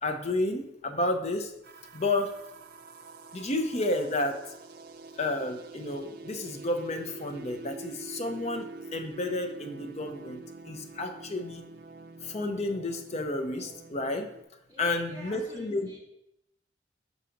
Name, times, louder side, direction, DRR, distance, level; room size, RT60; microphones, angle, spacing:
voice 1, 0.0-1.5 1.9-2.3 3.3-4.4 5.2-11.6 12.2-14.3 14.8-15.9, left 2 dB, 35° left, 6 dB, 0.6 m, -31 dB
sound 1, 1.6-14.4, right 3 dB, 55° right, 0.4 m, -46 dB
voice 2, 14.7-16.0, equal, 20° right, -6 dB, 2.0 m, -48 dB
5.0 x 4.1 x 5.8 m, 0.83 s
head